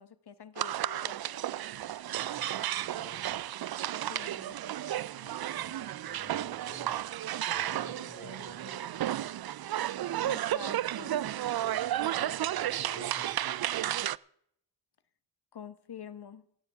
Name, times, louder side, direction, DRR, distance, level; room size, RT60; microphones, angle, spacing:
voice 1, 0.0-1.6 4.0-4.6 10.2-11.2 15.5-16.4, left 8 dB, 55° left, 1.2 m, -47 dB
sound 1, 0.6-14.2, right 12 dB, 55° right, 0.5 m, -33 dB
voice 2, 2.1-3.4 5.0-6.9 7.5-9.4 11.6-13.8, left 2 dB, 30° left, 4.1 m, -52 dB
26.5 x 9.6 x 3.5 m
cardioid pair, 50°, 46 cm